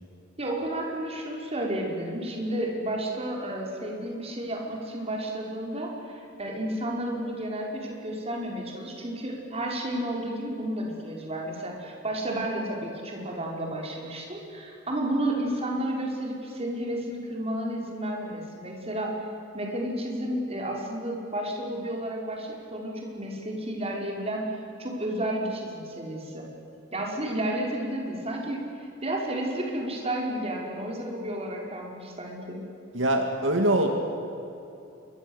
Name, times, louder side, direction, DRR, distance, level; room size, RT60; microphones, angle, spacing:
voice 1, 0.4-19.1 19.5-24.5 24.8-26.5 26.9-28.6 29.0-32.6, right 1 dB, 30° right, -1 dB, 5.4 m, -32 dB
voice 2, 32.9-33.9, right 1 dB, 80° right, 4 dB, 2.4 m, -23 dB
27.5 x 23.0 x 8.2 m, 2.8 s
head